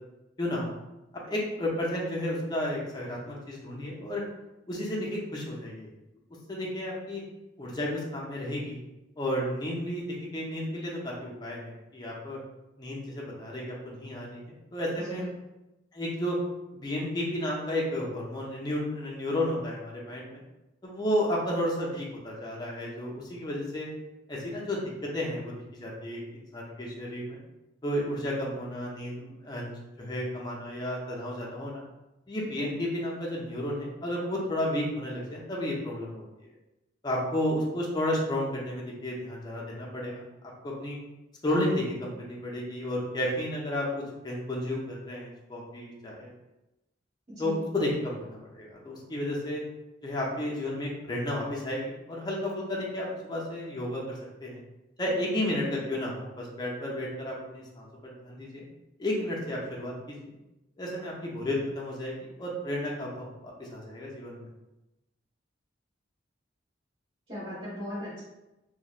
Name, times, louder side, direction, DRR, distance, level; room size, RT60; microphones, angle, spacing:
voice 1, 0.4-0.7 1.3-4.2 4.7-5.9 6.5-7.2 7.6-8.8 9.2-12.4 12.8-14.4 14.7-15.3 15.9-16.4 16.7-20.4 20.8-23.9 24.3-25.5 25.8-27.4 27.8-31.8 32.3-36.2 37.0-40.2 40.6-41.0 41.4-46.3 47.4-49.6 50.0-54.6 55.0-58.6 59.0-60.3 60.8-64.5, left 1 dB, 20° left, -4 dB, 0.5 m, -32 dB
voice 2, 15.0-15.3 47.4-47.6 67.3-68.2, equal, 35° right, -14 dB, 1.3 m, -37 dB
2.9 x 2.1 x 2.4 m, 0.97 s
head